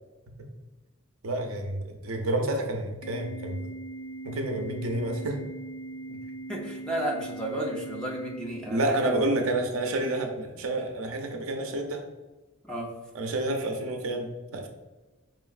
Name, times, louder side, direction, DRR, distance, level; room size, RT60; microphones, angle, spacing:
voice 1, 1.2-3.6 4.2-5.4 8.7-12.0 13.1-14.7, right 1 dB, 80° right, 4 dB, 0.6 m, -29 dB
Organ, 3.0-9.0, right 2 dB, 30° left, 0.9 m, -40 dB
voice 2, 6.5-9.2 12.6-12.9, right 1 dB, 5° left, -2 dB, 0.6 m, -33 dB
5.0 x 3.0 x 2.4 m, 1.2 s
head